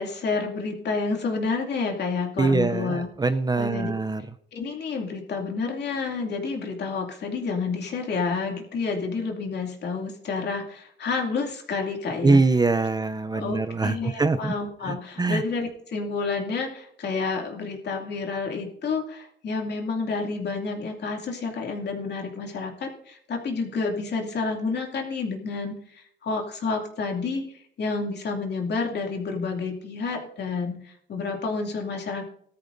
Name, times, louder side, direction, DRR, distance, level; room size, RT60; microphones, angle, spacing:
voice 1, 0.0-3.1 3.6-3.9 4.5-12.4 13.3-32.3, left 4 dB, 60° left, 1 dB, 2.5 m, -29 dB
voice 2, 2.4-4.2 12.2-14.5 15.2-15.4, right 3 dB, 20° right, 10 dB, 0.6 m, -23 dB
18.0 x 13.0 x 2.6 m, 0.69 s
cardioid pair, 90°, 20 cm